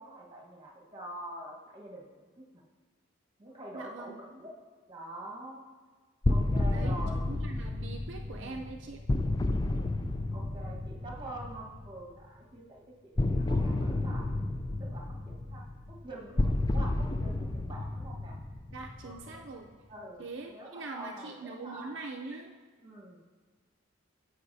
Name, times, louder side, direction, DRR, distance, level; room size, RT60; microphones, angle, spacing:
voice 1, 0.0-2.1 2.4-2.6 3.4-4.5 4.9-5.7 6.3-7.4 8.3-8.7 9.6-10.0 10.3-14.3 14.8-18.4 19.0-19.4 19.9-20.2 20.5-22.0 22.8-23.2, right 1 dB, 25° right, -2 dB, 1.3 m, -46 dB
voice 2, 3.7-4.2 6.7-6.9 7.3-9.0 18.7-19.7 20.2-22.5, right 3 dB, 60° right, 1 dB, 0.5 m, -42 dB
sound 1, 6.2-12.0 13.2-19.4, left 2 dB, 20° left, 0.3 m, -31 dB
14.5 x 5.6 x 2.7 m, 1.4 s
head